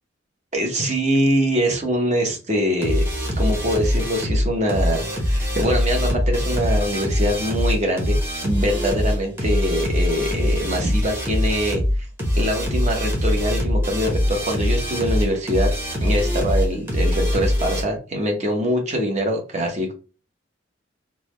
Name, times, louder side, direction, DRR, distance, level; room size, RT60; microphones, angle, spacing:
voice 1, 0.5-3.0 3.4-8.2 8.4-12.1 12.4-15.7 16.0-19.9, equal, 35° right, 2 dB, 0.9 m, -23 dB
sound 1, 2.8-17.8, equal, 10° right, 1.0 m, -22 dB
3.5 x 2.2 x 3.1 m, 0.35 s
head